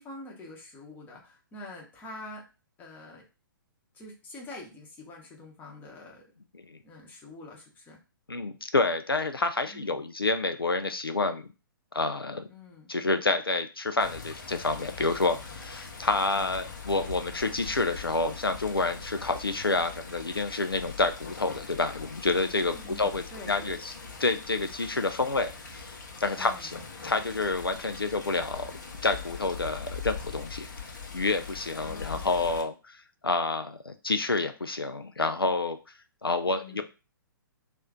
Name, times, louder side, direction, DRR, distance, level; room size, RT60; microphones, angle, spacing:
voice 1, 0.0-2.4 2.8-3.2 3.9-6.2 6.8-8.0 9.7-10.1 12.5-12.9 16.3-16.7 22.7-23.7 26.4-26.7 31.8-32.5 36.5-36.8, left 2 dB, 15° left, -1 dB, 0.9 m, -46 dB
voice 2, 8.3-11.5 11.9-12.5 12.9-23.9 24.2-26.8 27.0-28.7 29.0-35.8 36.2-36.8, left 3 dB, 85° left, 8 dB, 0.4 m, -29 dB
Water, 14.0-32.6, left 5 dB, 55° left, 0.7 m, -42 dB
3.0 x 2.4 x 3.6 m, 0.31 s
figure-of-eight pair, 120°, 12 cm